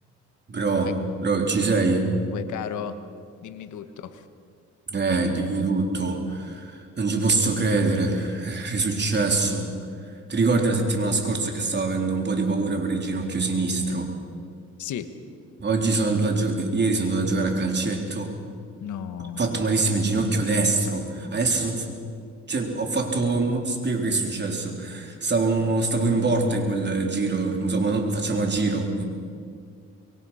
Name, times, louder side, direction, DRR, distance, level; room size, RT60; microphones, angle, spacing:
voice 1, 0.5-1.0 1.2-2.1 4.9-9.7 10.3-14.1 15.6-18.3 19.4-21.9 22.5-29.0, right 3 dB, 35° right, 2 dB, 3.8 m, -24 dB
voice 2, 2.3-3.0 3.4-4.2 14.8-15.1 18.8-19.6, left 9 dB, 75° left, 10 dB, 1.4 m, -34 dB
25.0 x 22.5 x 5.8 m, 2.2 s
cardioid pair, 90°, 30 cm